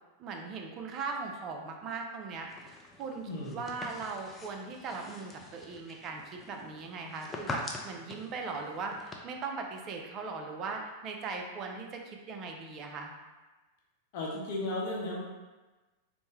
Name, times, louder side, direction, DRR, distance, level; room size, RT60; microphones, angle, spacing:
voice 1, 0.2-2.7 3.0-13.1, right 4 dB, 40° right, 2 dB, 0.5 m, -39 dB
sound 1, 2.5-9.2, left 3 dB, 20° left, 0.4 m, -44 dB
voice 2, 3.3-3.8 14.1-15.2, left 1 dB, 55° left, -3 dB, 0.8 m, -35 dB
3.3 x 2.1 x 3.3 m, 1.2 s
hypercardioid pair, 100°, 0 cm